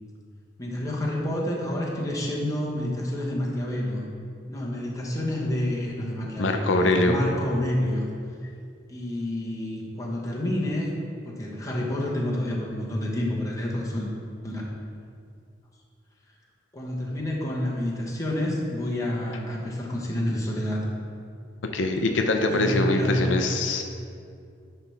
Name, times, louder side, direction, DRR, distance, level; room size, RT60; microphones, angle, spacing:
voice 1, 0.6-4.0 4.5-8.1 8.9-10.9 11.2-14.1 14.4-14.6 16.7-20.9 22.5-23.3, left 1 dB, 20° left, -3 dB, 1.1 m, -28 dB
voice 2, 6.4-7.2 21.7-23.8, left 2 dB, 85° left, 5 dB, 0.6 m, -23 dB
9.7 x 3.5 x 5.6 m, 2.4 s
head